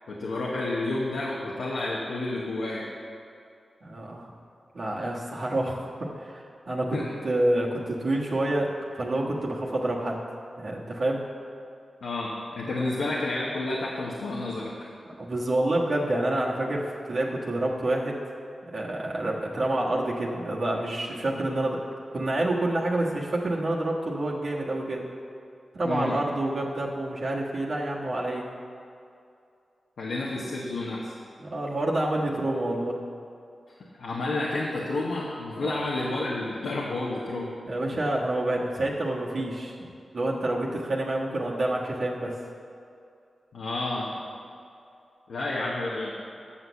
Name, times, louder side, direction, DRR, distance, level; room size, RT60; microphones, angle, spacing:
voice 1, 0.1-2.9 6.9-7.1 12.0-14.9 25.8-26.1 30.0-31.1 34.0-37.5 37.8-37.9 43.5-44.2 45.3-46.1, left 2 dB, 85° left, -4 dB, 1.1 m, -30 dB
voice 2, 3.8-4.3 4.7-7.0 7.2-10.2 10.6-11.2 15.2-18.2 18.7-21.8 22.1-25.0 25.7-28.5 31.4-33.0 35.6-35.7 37.6-42.3, right 1 dB, 65° right, -4 dB, 1.4 m, -28 dB
8.7 x 6.3 x 7.0 m, 2.5 s
cardioid pair, 55°, 0 cm